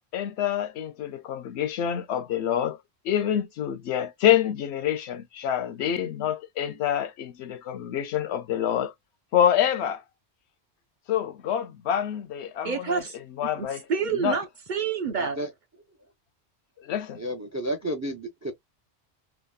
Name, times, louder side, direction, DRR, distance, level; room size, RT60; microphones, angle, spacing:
voice 1, 0.1-2.8 3.0-8.9 9.3-10.0 11.1-13.0 13.4-13.8 14.2-14.4 16.8-17.2, left 10 dB, 75° left, 0.8 m, -26 dB
voice 2, 12.6-15.4, right 6 dB, 50° right, 0.8 m, -29 dB
voice 3, 17.2-18.5, right 1 dB, 25° right, 0.3 m, -31 dB
3.6 x 2.0 x 2.3 m
omnidirectional pair, 1.2 m